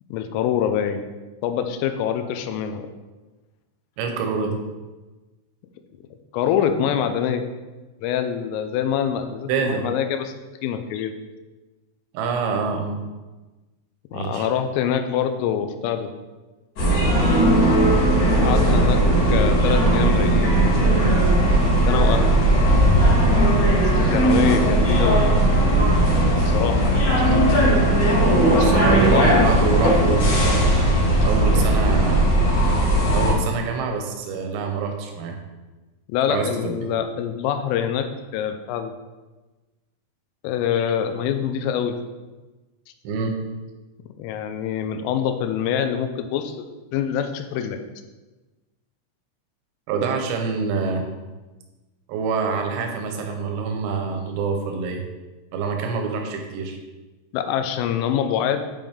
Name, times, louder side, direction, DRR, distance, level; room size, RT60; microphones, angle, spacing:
voice 1, 0.1-1.0 1.4-2.9 6.3-7.4 8.0-10.3 10.6-11.1 14.1-16.1 18.3-19.0 19.3-20.8 21.9-22.4 23.7-25.2 26.5-27.1 29.1-29.6 36.1-38.9 40.4-42.0 44.2-46.6 46.9-47.8 57.3-58.7, left 8 dB, 85° left, 8 dB, 3.2 m, -25 dB
voice 2, 4.0-4.6 9.5-9.8 12.1-13.0 14.1-14.5 27.2-27.8 28.6-30.8 31.2-32.3 33.1-35.4 36.3-36.9 43.0-43.3 49.9-51.0 52.1-55.0 55.5-56.8, right 5 dB, 75° right, 3 dB, 2.8 m, -26 dB
sound 1, 16.8-33.3, right 1 dB, 45° left, 2.3 m, -17 dB
9.3 x 5.3 x 3.6 m, 1.2 s
omnidirectional pair, 5.8 m